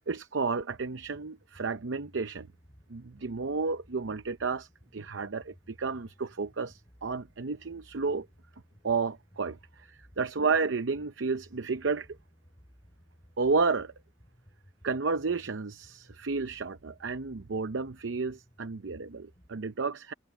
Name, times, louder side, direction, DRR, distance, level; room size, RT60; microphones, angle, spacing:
voice 1, 0.1-2.5 2.9-8.3 8.8-12.1 13.4-13.9 14.8-20.1, right 4 dB, 80° right, 0.7 m, -31 dB
sound 1, 0.7-19.5, equal, 25° left, 6.9 m, -59 dB
head